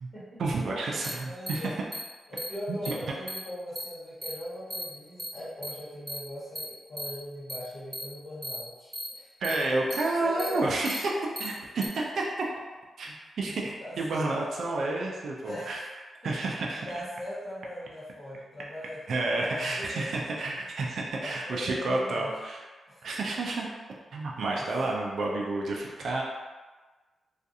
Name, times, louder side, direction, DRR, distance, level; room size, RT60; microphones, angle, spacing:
voice 1, 0.4-1.7 2.9-3.0 9.4-11.1 11.4-12.5 13.0-15.8 16.2-16.9 19.1-22.6 23.0-23.7 24.1-26.2, right 2 dB, 70° right, -2 dB, 0.3 m, -30 dB
sound 1, 1.0-1.1 1.5-1.6 1.9-2.0 2.4-2.5 2.8-2.9 3.3-3.4 3.8-3.9 4.2-4.3 4.7-4.8 5.2-5.3 5.6-5.7 6.1-6.2 6.6-6.7 7.0-7.1 7.5-7.6 7.9-8.0 8.4-8.6 8.9-9.1 9.4-9.6 9.9-10.0 10.4-10.5 10.8-11.0 11.4-11.5 11.8-11.9, equal, 15° right, 0.5 m, -35 dB
voice 2, 1.2-1.7 2.3-9.3 9.8-9.9 10.2-10.6 13.8-13.9 15.4-15.9 16.4-16.6 16.9-20.6 21.2-22.3 22.9-23.1 23.6-23.7 24.6-24.9, left 1 dB, 45° left, -10 dB, 1.2 m, -40 dB
2.4 x 2.3 x 2.6 m, 1.3 s
cardioid pair, 105°, 0 cm